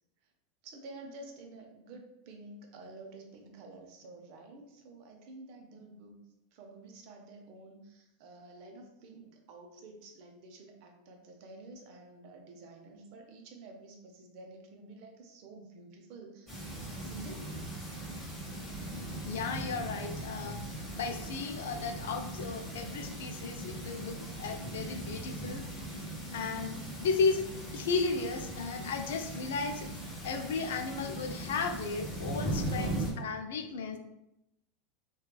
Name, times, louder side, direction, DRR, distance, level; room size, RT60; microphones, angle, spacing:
voice 1, 0.6-6.2 6.5-17.6, right 2 dB, 60° right, 3 dB, 0.6 m, -50 dB
sound 1, 16.5-33.1, right 1 dB, 10° left, 1.1 m, -39 dB
voice 2, 19.2-20.6 20.9-25.6 26.3-27.5 27.7-29.9 30.2-34.0, left 4 dB, 80° left, 6 dB, 0.3 m, -34 dB
3.1 x 2.2 x 2.3 m, 0.87 s
supercardioid pair, 115°, 0 cm